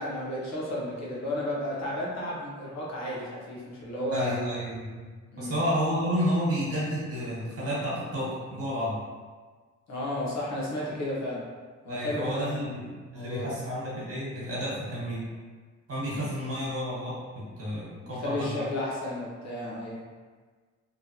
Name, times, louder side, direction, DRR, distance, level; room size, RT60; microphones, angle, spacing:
voice 1, 0.0-4.4 5.3-5.6 9.9-11.5 11.8-12.7 13.1-13.6 18.0-20.0, left 1 dB, 60° left, -5 dB, 1.0 m, -33 dB
voice 2, 4.1-5.0 5.4-9.0 11.9-15.2 15.9-18.7, equal, 50° right, -7 dB, 1.4 m, -31 dB
2.9 x 2.3 x 2.8 m, 1.5 s
cardioid pair, 90°, 30 cm